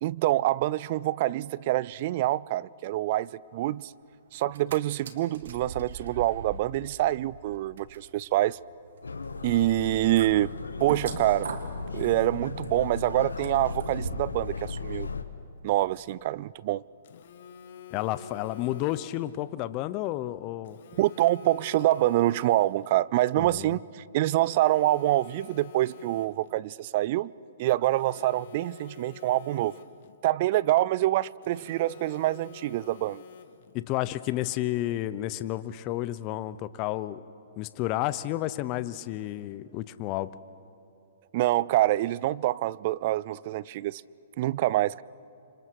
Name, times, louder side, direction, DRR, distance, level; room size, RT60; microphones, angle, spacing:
voice 1, 0.0-3.9 4.3-8.6 9.4-10.5 10.8-11.5 11.9-15.1 15.6-16.8 21.0-27.3 27.6-29.7 30.2-33.2 41.3-44.0 44.4-45.0, right 15 dB, 50° right, 0.5 m, -26 dB
sound 1, 4.4-4.8 5.0-14.4 14.8-14.9, right 5 dB, 65° right, 2.1 m, -42 dB
sound 2, 9.0-15.2, left 4 dB, 90° left, 1.3 m, -36 dB
Telephone, 17.0-19.4 20.7-23.0 24.2-26.6 27.8-30.2 31.4-33.8, left 9 dB, 60° left, 1.2 m, -48 dB
voice 2, 17.9-20.8 23.4-23.8 33.7-37.2 37.6-40.3, left 15 dB, 35° left, 0.9 m, -31 dB
30.0 x 26.5 x 4.8 m
hypercardioid pair, 125°, 0 cm